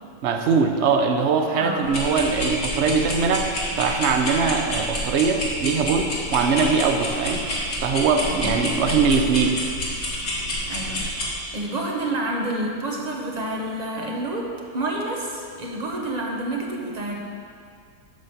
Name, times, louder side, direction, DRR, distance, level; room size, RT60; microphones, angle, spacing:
voice 1, 0.2-3.5 3.8-7.4 7.8-9.6, right 5 dB, 55° right, 5 dB, 0.9 m, -21 dB
voice 2, 1.6-2.0 8.3-8.6 10.7-17.2, right 1 dB, 30° right, -1 dB, 1.1 m, -29 dB
sound 1, 1.8-11.3, left 1 dB, 65° left, 2.3 m, -28 dB
11.5 x 4.1 x 7.0 m, 2.2 s
omnidirectional pair, 1.6 m